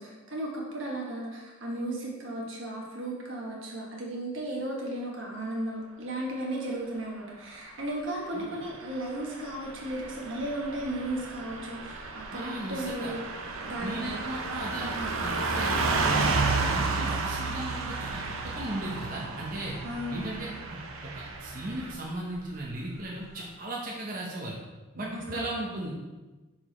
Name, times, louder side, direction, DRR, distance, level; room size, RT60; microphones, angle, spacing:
voice 1, 0.0-13.2 13.6-14.2 19.8-20.5 25.0-25.5, right 1 dB, 65° right, -3 dB, 1.3 m, -35 dB
Car passing by / Truck, 8.9-21.9, right 3 dB, 80° right, 0.7 m, -32 dB
sound 1, 9.4-23.4, right 1 dB, 15° right, 1.5 m, -52 dB
voice 2, 12.3-13.1 13.8-16.3 16.5-19.7 20.1-24.6 24.9-25.9, right 1 dB, 40° right, -4 dB, 0.9 m, -37 dB
5.9 x 5.0 x 4.3 m, 1.2 s
head